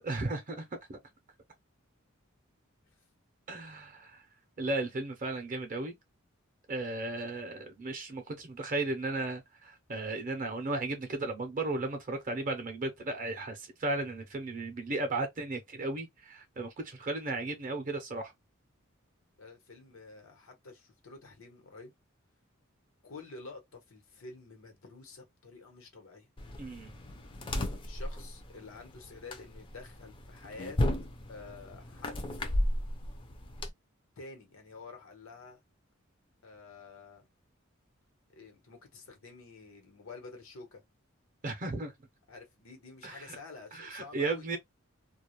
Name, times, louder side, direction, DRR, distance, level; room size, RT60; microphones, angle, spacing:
voice 1, 0.0-1.0 3.5-4.3 4.6-5.9 6.7-18.3 26.6-26.9 41.4-41.9 43.0-43.4 43.7-44.6, right 2 dB, 40° right, 0.5 m, -35 dB
voice 2, 19.4-21.9 23.0-26.3 27.8-30.8 31.3-32.2 34.2-35.6 36.4-37.2 38.3-40.8 42.3-44.6, left 3 dB, 85° left, 1.0 m, -49 dB
sound 1, 26.4-33.7, left 1 dB, 25° left, 0.4 m, -35 dB
2.2 x 2.0 x 2.9 m
head